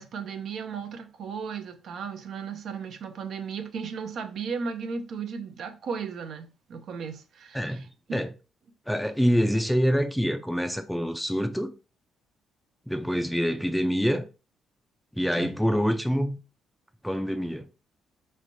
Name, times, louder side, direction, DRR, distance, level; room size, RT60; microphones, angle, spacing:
voice 1, 0.0-8.2 15.4-15.6, right 6 dB, 65° right, 0.6 m, -35 dB
voice 2, 7.5-7.9 8.1-8.3 8.9-11.7 12.9-14.3 15.1-16.4 17.0-17.7, equal, ahead, 0.5 m, -26 dB
4.4 x 3.2 x 2.6 m
cardioid pair, 90°, 0 cm